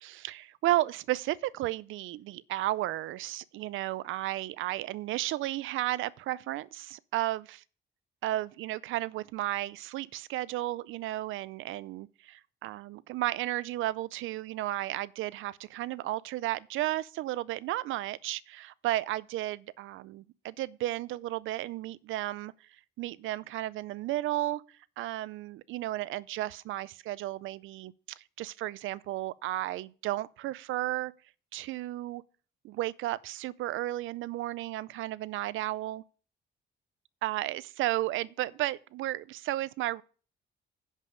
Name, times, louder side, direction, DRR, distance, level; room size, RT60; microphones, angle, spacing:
voice 1, 0.0-7.6 8.2-22.5 23.0-31.1 31.5-32.2 32.6-36.0 37.2-40.0, right 15 dB, 85° right, 0.5 m, -33 dB
10.5 x 5.4 x 5.0 m
cardioid pair, 90°, 20 cm